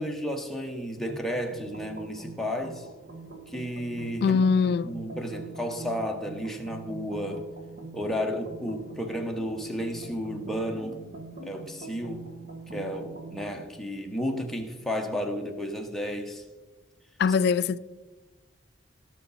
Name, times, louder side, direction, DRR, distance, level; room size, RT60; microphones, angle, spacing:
voice 1, 0.0-2.9 3.5-4.4 4.8-7.5 7.9-11.0 11.4-12.2 12.7-16.4, equal, ahead, 0.9 m, -32 dB
sound 1, 1.0-13.7, right 2 dB, 50° right, 1.3 m, -43 dB
voice 2, 4.2-4.9 17.2-17.8, left 5 dB, 55° left, 0.3 m, -22 dB
16.5 x 5.8 x 4.1 m
head